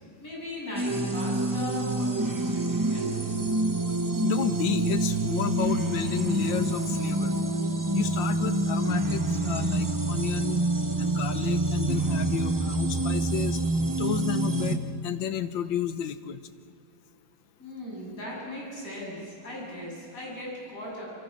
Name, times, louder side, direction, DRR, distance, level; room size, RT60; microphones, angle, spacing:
voice 1, 0.2-3.1 17.6-21.1, left 1 dB, 40° left, -4 dB, 8.1 m, -38 dB
sound 1, 0.7-14.8, right 2 dB, 25° right, 0.4 m, -27 dB
voice 2, 4.2-7.4 7.9-10.6 11.0-13.6 14.0-16.4, left 10 dB, 70° left, 12 dB, 1.6 m, -32 dB
27.0 x 24.0 x 6.2 m, 2.3 s
omnidirectional pair, 2.2 m